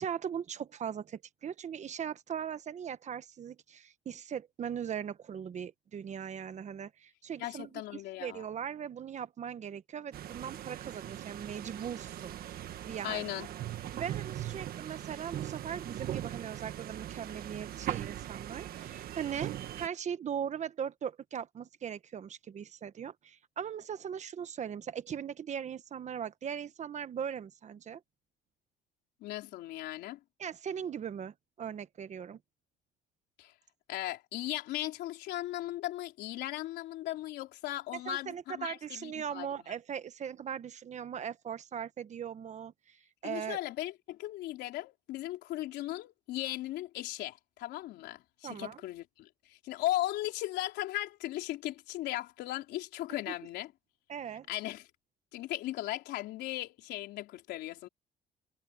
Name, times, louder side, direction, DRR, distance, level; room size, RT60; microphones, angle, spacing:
voice 1, 0.0-12.4 12.8-13.5 13.9-28.0 30.4-32.4 38.0-43.6 48.4-48.8 53.3-53.4 54.1-54.5, right 8 dB, 45° right, 1.3 m, -39 dB
voice 2, 7.4-8.4 13.0-13.5 29.2-30.2 33.4-33.5 33.9-39.5 43.2-53.7 54.5-54.9 55.3-57.9, left 15 dB, 80° left, 3.8 m, -37 dB
sound 1, 10.1-19.9, right 12 dB, 65° right, 1.5 m, -40 dB
cardioid pair, 110°, 17 cm